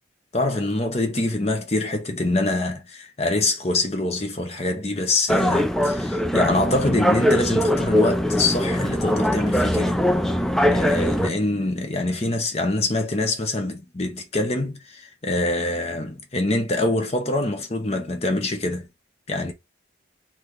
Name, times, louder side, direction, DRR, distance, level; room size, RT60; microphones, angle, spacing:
voice 1, 0.3-10.1 10.7-18.9 19.3-19.5, left 2 dB, 35° left, 0.9 m, -25 dB
sound 1, 5.3-11.3, left 1 dB, ahead, 0.3 m, -21 dB
4.2 x 2.5 x 3.2 m
head